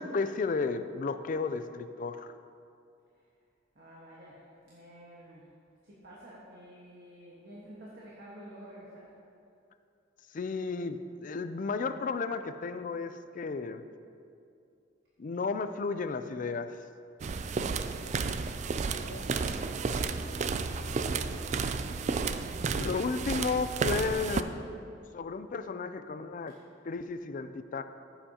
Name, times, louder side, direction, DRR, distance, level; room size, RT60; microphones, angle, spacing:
voice 1, 0.0-2.3 10.3-13.8 15.2-16.8 22.8-24.6 25.1-26.5 26.9-27.8, left 4 dB, 45° left, 11 dB, 0.4 m, -33 dB
voice 2, 3.7-5.5 5.8-9.1 18.9-20.4 26.5-26.6, equal, 60° right, -6 dB, 1.5 m, -50 dB
sound 1, 17.2-24.4, right 4 dB, 40° right, 0.3 m, -32 dB
14.0 x 7.8 x 2.9 m, 2.5 s
head